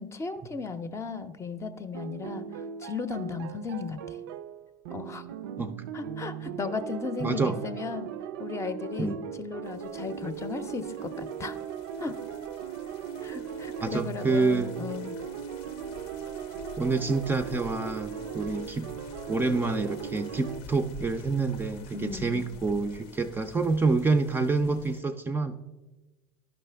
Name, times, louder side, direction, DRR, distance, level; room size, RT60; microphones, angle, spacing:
voice 1, 0.0-2.5 2.8-4.2 4.9-5.2 5.9-8.1 8.4-11.6 12.0-12.2 13.2-15.2 21.9-22.4, left 5 dB, 25° left, 10 dB, 0.6 m, -36 dB
sound 1, 1.9-20.6, right 8 dB, 75° right, 0.4 m, -38 dB
voice 2, 7.2-7.6 9.0-9.2 13.8-14.7 16.8-18.9 19.3-25.5, right 3 dB, 20° right, 7 dB, 0.4 m, -27 dB
sound 2, 9.6-25.0, left 5 dB, 65° left, 0.7 m, -49 dB
12.0 x 5.3 x 3.4 m, 1.2 s
hypercardioid pair, 85°, 11 cm